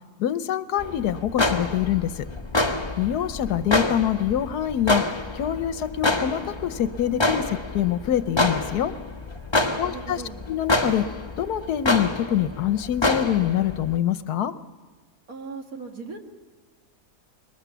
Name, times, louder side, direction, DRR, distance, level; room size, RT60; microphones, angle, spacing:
voice 1, 0.2-2.3 3.0-5.0 5.3-8.9 9.8-10.2 10.5-11.1 11.4-14.5, left 10 dB, 80° left, 12 dB, 1.4 m, -25 dB
sound 1, 0.8-14.0, left 2 dB, 20° left, 1.2 m, -27 dB
voice 2, 9.6-10.5 15.3-16.2, right 4 dB, 60° right, 3 dB, 2.5 m, -38 dB
22.0 x 20.5 x 7.0 m, 1.4 s
omnidirectional pair, 1.7 m